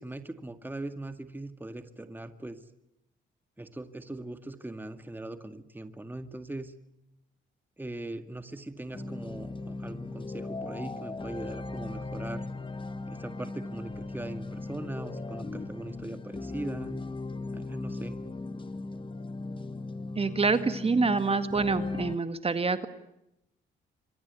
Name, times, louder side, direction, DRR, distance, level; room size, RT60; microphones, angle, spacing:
voice 1, 0.0-2.6 3.6-6.7 7.8-12.5 13.1-17.0 17.5-18.2, right 2 dB, 10° right, 9 dB, 2.1 m, -40 dB
sound 1, 8.9-22.2, left 3 dB, 25° left, 1.8 m, -38 dB
voice 2, 20.2-22.9, right 4 dB, 30° right, 11 dB, 2.0 m, -26 dB
26.0 x 24.5 x 8.4 m, 0.84 s
cardioid pair, 90°, 20 cm